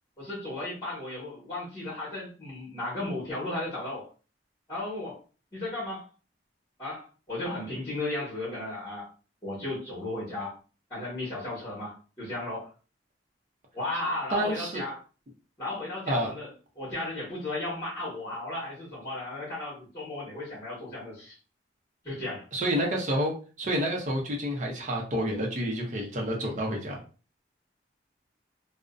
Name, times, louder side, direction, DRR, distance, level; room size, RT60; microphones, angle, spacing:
voice 1, 0.2-4.1 4.7-5.2 5.5-6.1 6.8-9.1 9.4-10.5 10.9-12.7 13.7-15.0 15.6-16.5 16.7-21.3 22.0-22.4, left 2 dB, 25° left, -8 dB, 1.1 m, -35 dB
voice 2, 14.3-14.8 16.1-16.3 22.5-27.0, equal, 40° right, 0 dB, 0.6 m, -29 dB
2.5 x 2.0 x 2.4 m, 0.36 s
head